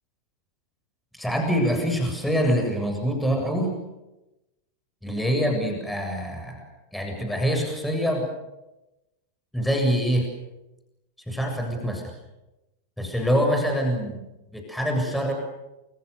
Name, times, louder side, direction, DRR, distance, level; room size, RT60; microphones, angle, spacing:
voice 1, 1.1-3.7 5.0-6.7 6.9-8.3 9.5-10.3 11.3-12.1 13.0-14.2 14.5-15.3, equal, ahead, 2 dB, 7.3 m, -25 dB
29.0 x 27.5 x 6.9 m, 0.96 s
figure-of-eight pair, 90°, 0 cm